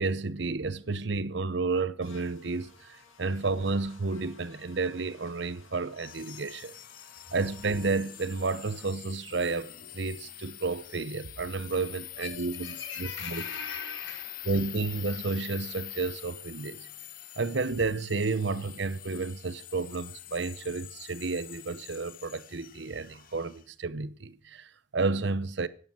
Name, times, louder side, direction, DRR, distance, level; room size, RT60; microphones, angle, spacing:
voice 1, 0.0-6.7 7.3-13.4 14.5-16.9 17.4-25.7, right 3 dB, 60° right, 0.8 m, -31 dB
Buzz, 2.0-8.9, left 4 dB, 85° left, 6.4 m, -56 dB
sound 1, 6.0-23.6, left 12 dB, 45° left, 1.0 m, -45 dB
voice 2, 12.1-14.5, left 5 dB, 70° left, 4.9 m, -40 dB
16.5 x 11.5 x 6.2 m
head